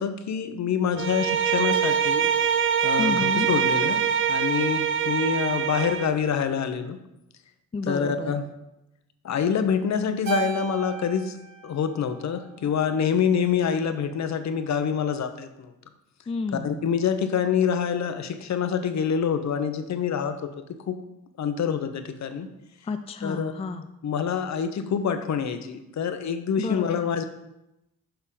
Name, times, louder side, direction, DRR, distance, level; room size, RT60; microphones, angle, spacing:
voice 1, 0.0-2.3 2.8-7.0 7.9-8.4 9.2-11.4 11.6-15.7 16.6-20.5 20.9-21.0 21.4-22.5 23.2-23.5 24.0-27.2, left 7 dB, 50° left, 9 dB, 0.8 m, -26 dB
Bowed string instrument, 1.0-6.2, right 8 dB, 35° right, 0.6 m, -24 dB
voice 2, 3.0-3.5 7.7-8.3 16.3-16.8 22.9-23.8 26.6-27.1, left 4 dB, 15° left, 8 dB, 0.4 m, -30 dB
Keyboard (musical), 10.2-12.8, right 8 dB, 65° right, 2.2 m, -35 dB
6.7 x 5.6 x 3.8 m, 0.90 s
supercardioid pair, 55°, 36 cm